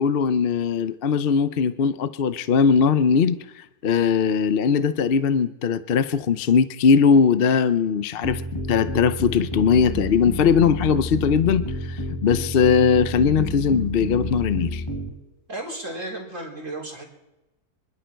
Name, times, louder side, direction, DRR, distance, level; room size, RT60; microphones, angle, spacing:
voice 1, 0.0-3.4 3.8-8.4 8.7-14.8, left 6 dB, 50° left, 12 dB, 0.7 m, -20 dB
sound 1, 8.2-15.1, left 1 dB, 20° left, 3.9 m, -30 dB
voice 2, 15.5-17.0, right 2 dB, 55° right, -2 dB, 4.2 m, -33 dB
26.5 x 11.5 x 4.5 m, 0.99 s
omnidirectional pair, 1.6 m